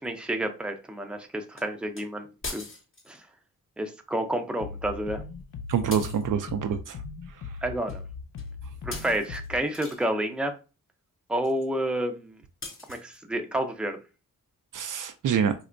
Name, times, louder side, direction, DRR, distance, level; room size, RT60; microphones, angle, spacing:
voice 1, 0.0-2.6 3.1-3.2 3.8-5.2 7.6-8.0 8.8-10.5 11.3-12.4 12.9-14.0, right 1 dB, 5° right, 0.6 m, -30 dB
sound 1, 1.6-1.7 2.0-2.1 2.4-3.2 5.9-6.3 7.9-8.0 8.4-8.5 8.9-10.1 12.6-13.2, left 2 dB, 35° left, 1.0 m, -40 dB
sound 2, 4.6-9.6, left 5 dB, 55° left, 0.5 m, -39 dB
voice 2, 5.7-7.0 14.7-15.5, right 7 dB, 60° right, 0.4 m, -26 dB
4.4 x 2.1 x 2.5 m
cardioid pair, 50°, 36 cm